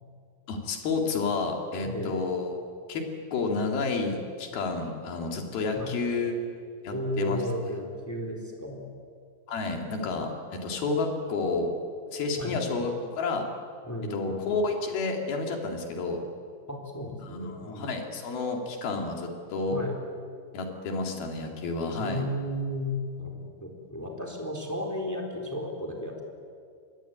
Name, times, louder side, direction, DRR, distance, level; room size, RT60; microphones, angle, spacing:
voice 1, 0.5-2.6 2.9-3.0 3.3-6.4 6.8-7.4 9.5-11.7 12.1-13.5 14.1-16.2 17.2-19.8 20.5-22.2, left 3 dB, 80° left, 2 dB, 4.4 m, -30 dB
voice 2, 1.8-2.2 5.7-5.9 6.9-8.8 12.4-12.6 13.8-14.4 16.7-17.9 19.7-19.9 21.9-26.2, left 1 dB, 5° left, 1 dB, 3.6 m, -33 dB
25.0 x 20.5 x 9.2 m, 2.2 s
omnidirectional pair, 4.2 m